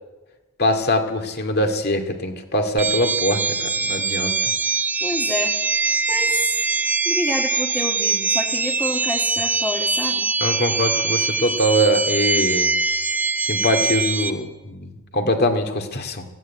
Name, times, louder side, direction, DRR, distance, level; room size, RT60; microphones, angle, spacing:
voice 1, 0.6-4.5 10.4-12.8 13.4-16.3, equal, 45° left, 4 dB, 2.3 m, -22 dB
sound 1, 2.8-14.3, right 4 dB, 10° right, 0.9 m, -23 dB
voice 2, 5.0-5.6 6.1-6.4 7.0-10.3, left 1 dB, 10° left, -3 dB, 1.8 m, -28 dB
18.0 x 16.0 x 9.6 m, 1.1 s
head